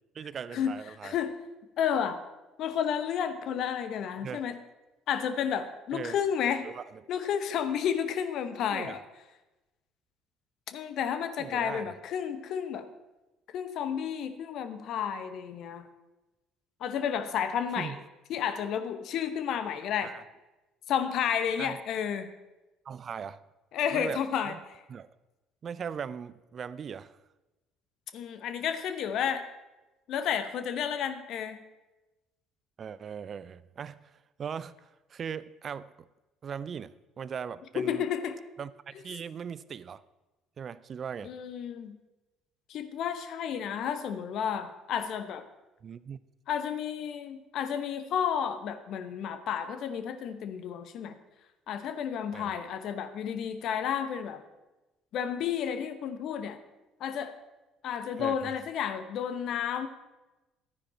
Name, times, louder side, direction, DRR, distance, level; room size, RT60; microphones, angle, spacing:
voice 1, 0.1-1.2 4.2-4.4 5.9-6.2 6.6-7.0 8.7-9.0 11.4-11.9 17.8-18.0 20.0-20.2 21.6-21.8 22.9-23.4 23.9-24.6 24.9-25.1 25.6-27.2 32.8-36.1 36.4-38.1 38.6-40.0 40.6-41.3 45.8-46.2 52.3-52.5 58.2-58.5, right 7 dB, 45° right, 17 dB, 0.5 m, -39 dB
voice 2, 1.0-1.3 1.8-2.2 2.6-4.6 5.1-6.7 7.1-9.0 10.7-12.9 13.5-15.9 16.8-18.0 18.3-20.1 20.9-22.3 23.7-24.5 28.1-29.4 30.1-31.6 37.8-38.4 41.2-42.0 42.7-45.4 46.5-51.1 51.7-54.4 55.1-56.6 57.0-57.4 57.8-59.9, left 8 dB, 55° left, 10 dB, 0.9 m, -31 dB
12.0 x 9.8 x 4.3 m, 1.1 s
hypercardioid pair, 55°, 0 cm